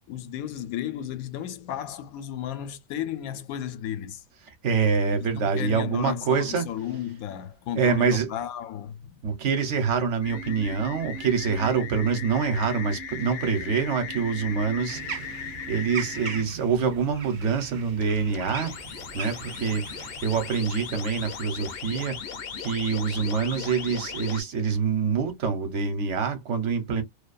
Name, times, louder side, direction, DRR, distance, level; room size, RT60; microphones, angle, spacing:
voice 1, 0.1-4.2 5.2-9.2, left 11 dB, 80° left, 1.0 m, -34 dB
voice 2, 4.6-6.7 7.7-8.3 9.2-18.7 19.1-27.0, right 6 dB, 60° right, 1.0 m, -26 dB
sound 1, 10.2-16.4 18.0-24.4, left 5 dB, 55° left, 0.7 m, -37 dB
sound 2, 14.9-20.6, right 6 dB, 80° right, 0.4 m, -40 dB
2.6 x 2.2 x 2.3 m
omnidirectional pair, 1.5 m